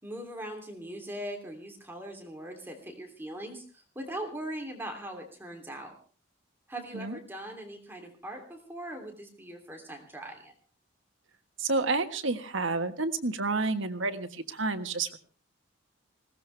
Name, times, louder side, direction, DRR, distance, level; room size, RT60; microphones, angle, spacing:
voice 1, 0.0-5.9 6.7-10.5, right 1 dB, 10° right, 2 dB, 3.1 m, -40 dB
voice 2, 11.6-15.2, right 3 dB, 85° right, 8 dB, 1.5 m, -30 dB
20.0 x 17.5 x 3.4 m, 0.37 s
head